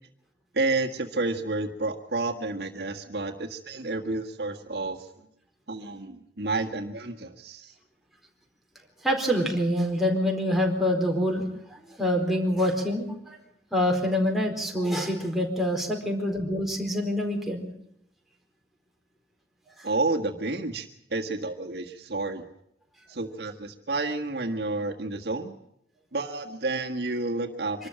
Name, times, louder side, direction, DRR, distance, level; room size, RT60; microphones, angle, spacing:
voice 1, 0.5-5.3 5.7-7.7 19.8-22.4 23.1-25.6 26.1-27.9, right 2 dB, 65° right, 3 dB, 1.7 m, -30 dB
voice 2, 9.0-11.4 11.7-13.4 13.7-17.6, equal, ahead, 0 dB, 4.3 m, -26 dB
25.0 x 13.5 x 8.9 m, 0.77 s
head